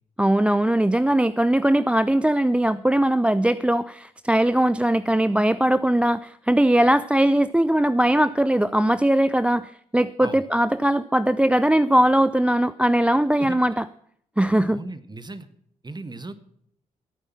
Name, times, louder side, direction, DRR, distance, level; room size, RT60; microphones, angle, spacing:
voice 1, 0.2-13.8 14.4-14.8, right 1 dB, 5° right, 15 dB, 0.4 m, -20 dB
voice 2, 14.7-15.5 15.8-16.3, right 2 dB, 25° right, 13 dB, 1.5 m, -36 dB
15.5 x 8.9 x 5.9 m, 0.67 s
hypercardioid pair, 40°, 18 cm